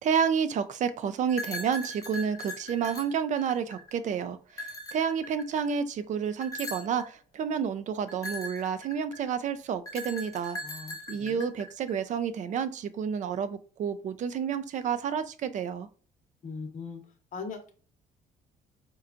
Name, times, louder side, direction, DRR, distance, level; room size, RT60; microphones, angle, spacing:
voice 1, 0.0-10.6 11.1-15.9, right 7 dB, 45° right, 0.4 m, -30 dB
sound 1, 1.3-4.0 4.5-5.7 6.4-7.1 8.1-9.3 9.9-11.9, left 1 dB, 20° left, 0.7 m, -39 dB
voice 2, 10.6-11.5 16.4-17.0 17.3-17.7, left 4 dB, 50° left, 0.9 m, -40 dB
4.3 x 2.3 x 2.5 m
cardioid pair, 110°, 17 cm